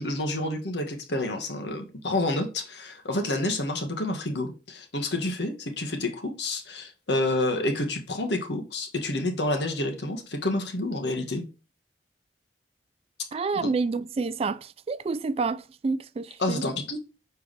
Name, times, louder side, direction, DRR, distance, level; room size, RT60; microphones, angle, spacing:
voice 1, 0.0-11.5 13.5-13.7 16.4-17.0, left 2 dB, 75° left, 1.5 m, -29 dB
voice 2, 13.3-16.6, right 4 dB, 35° right, 0.3 m, -29 dB
7.0 x 4.7 x 3.3 m
head